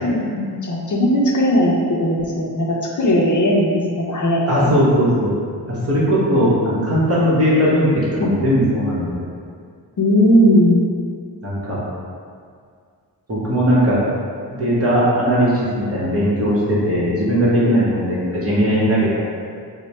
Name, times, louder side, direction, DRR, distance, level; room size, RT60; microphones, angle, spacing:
voice 1, 0.0-4.7 8.2-8.3 10.0-10.8, equal, 45° left, -4 dB, 0.5 m, -17 dB
voice 2, 4.5-5.3 5.7-7.9 8.2-9.1 11.4-11.8 13.3-14.0 14.5-19.3, equal, 35° right, -8 dB, 1.0 m, -18 dB
3.1 x 2.1 x 4.1 m, 2.2 s
wide cardioid pair, 115°, 41 cm